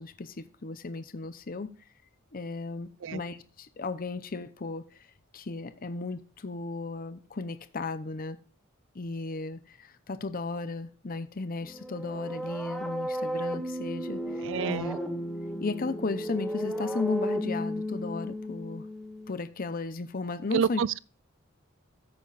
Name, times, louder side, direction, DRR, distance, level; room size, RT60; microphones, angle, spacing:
voice 1, 0.0-1.7 2.3-5.1 5.3-8.4 8.9-15.0 15.6-18.9 19.3-20.8, left 3 dB, 45° left, 0.7 m, -35 dB
sound 1, 11.6-19.4, equal, ahead, 1.9 m, -34 dB
voice 2, 14.4-15.0 20.5-21.0, right 7 dB, 65° right, 0.4 m, -28 dB
14.0 x 8.8 x 2.5 m
head